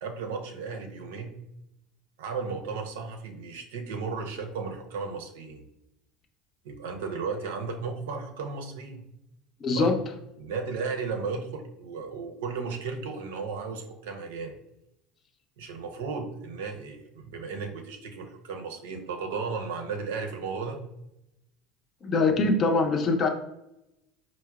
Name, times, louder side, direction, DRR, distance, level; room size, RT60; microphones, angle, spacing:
voice 1, 0.0-1.4 2.2-5.6 6.6-9.0 9.7-9.9 10.4-14.6 15.6-20.8, right 5 dB, 85° right, 4 dB, 0.5 m, -35 dB
voice 2, 9.6-10.0 22.0-23.3, left 3 dB, 45° left, 5 dB, 0.6 m, -23 dB
4.5 x 2.0 x 2.3 m, 0.85 s
hypercardioid pair, 80°, 0 cm